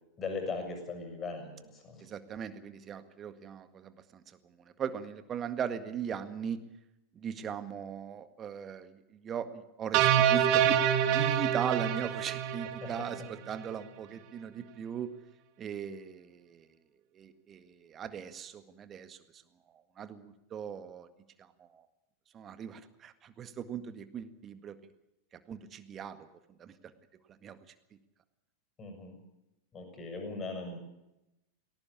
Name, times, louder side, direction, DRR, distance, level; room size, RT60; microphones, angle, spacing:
voice 1, 0.2-2.1 12.8-13.3 28.8-29.2 29.7-30.8, left 3 dB, 25° left, 5 dB, 7.1 m, -39 dB
voice 2, 2.0-6.6 7.1-15.1 15.6-16.7 17.1-19.4 20.0-21.1 21.4-21.8 22.3-24.8 25.5-26.3 26.6-26.7 27.4-27.6, right 8 dB, 25° right, 11 dB, 1.8 m, -39 dB
sound 1, 9.9-13.3, right 9 dB, 45° right, 2.0 m, -26 dB
19.5 x 17.5 x 8.6 m, 0.91 s
figure-of-eight pair, 90°, 0 cm